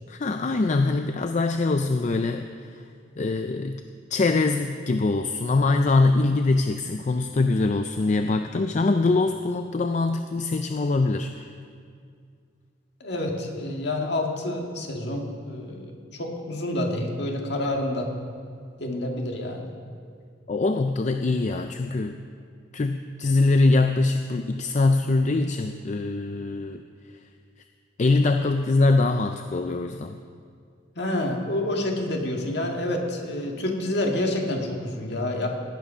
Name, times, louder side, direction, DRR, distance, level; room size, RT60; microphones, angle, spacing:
voice 1, 0.1-2.8 3.2-3.8 4.1-11.5 20.5-22.2 22.7-26.8 28.0-30.2, left 3 dB, 35° left, 7 dB, 0.4 m, -23 dB
voice 2, 13.0-18.1 18.8-19.7 31.0-35.5, left 1 dB, 55° left, 1 dB, 1.9 m, -28 dB
17.5 x 9.0 x 5.6 m, 2.2 s
head